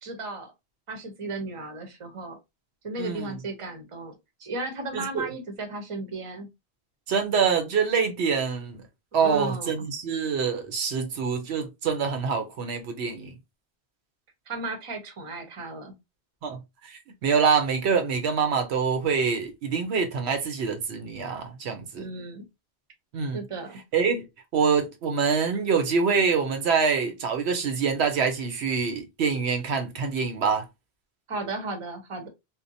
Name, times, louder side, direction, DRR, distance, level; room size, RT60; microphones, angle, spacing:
voice 1, 0.0-0.5 0.9-2.4 2.8-6.5 9.2-9.8 14.5-15.9 22.0-22.4 23.3-23.8 31.3-32.3, right 3 dB, 35° right, 0.7 m, -35 dB
voice 2, 3.0-3.3 4.9-5.3 7.1-8.8 9.1-13.4 16.4-22.0 23.1-23.4 23.9-24.3 24.5-30.6, right 5 dB, 85° right, 0.9 m, -25 dB
2.7 x 2.1 x 2.5 m
omnidirectional pair, 1.1 m